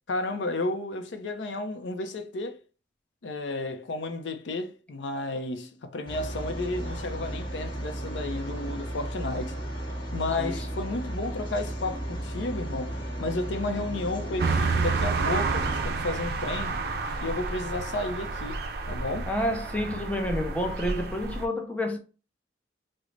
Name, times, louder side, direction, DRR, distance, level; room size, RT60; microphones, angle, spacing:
voice 1, 0.1-2.6 3.2-9.6 10.1-16.9 17.2-19.3, left 2 dB, 80° left, 0.5 m, -32 dB
sound 1, 6.1-15.9, right 1 dB, 25° left, 1.0 m, -34 dB
sound 2, 14.4-21.5, right 4 dB, 60° right, 0.4 m, -30 dB
voice 2, 19.3-22.0, left 1 dB, 10° left, 0.5 m, -29 dB
3.7 x 2.0 x 3.1 m
head